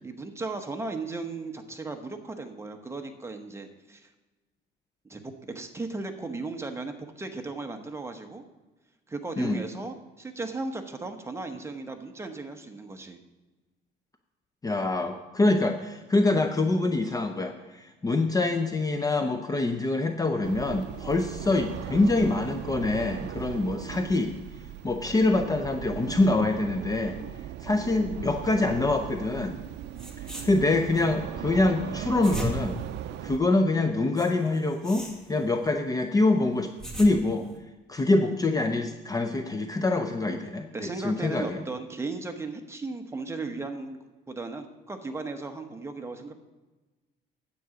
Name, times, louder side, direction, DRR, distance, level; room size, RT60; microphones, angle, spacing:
voice 1, 0.0-4.1 5.1-8.4 9.1-13.2 40.7-44.0 44.3-46.3, right 3 dB, 15° right, 5 dB, 1.0 m, -36 dB
voice 2, 14.6-24.3 24.8-27.2 27.6-29.6 30.2-32.8 33.2-36.7 37.0-37.5 37.9-41.6, left 2 dB, 20° left, 6 dB, 0.6 m, -25 dB
sound 1, 20.4-33.4, right 12 dB, 65° right, 0.5 m, -38 dB
sound 2, 29.6-29.7 29.9-31.0 31.9-33.6 34.2-35.7 36.5-37.6, right 1 dB, 5° left, 1.6 m, -38 dB
9.3 x 8.1 x 5.0 m, 1.2 s
cardioid pair, 130°, 19 cm